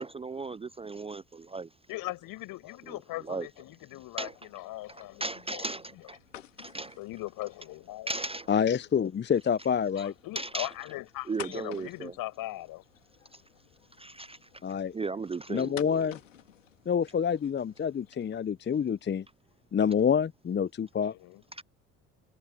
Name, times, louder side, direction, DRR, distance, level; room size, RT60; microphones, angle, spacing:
voice 1, 0.0-1.7 2.9-3.0 3.3-3.5 4.2-4.3 4.9-6.2 6.6-7.0 8.1-8.5 10.4-10.7 11.3-12.1 14.0-14.4 14.9-16.1 21.6-21.7, right 3 dB, 15° right, 0.5 m, -36 dB
voice 2, 1.9-5.6 5.9-6.0 6.9-8.1 10.0-12.8 21.1-21.4, left 17 dB, 65° left, 5.7 m, -40 dB
sound 1, 4.2-18.4, left 10 dB, 90° left, 2.7 m, -52 dB
voice 3, 8.5-10.1 14.6-14.9 15.5-16.2 16.9-19.3 19.7-21.1, left 7 dB, 30° left, 0.8 m, -27 dB
hypercardioid pair, 55°, 37 cm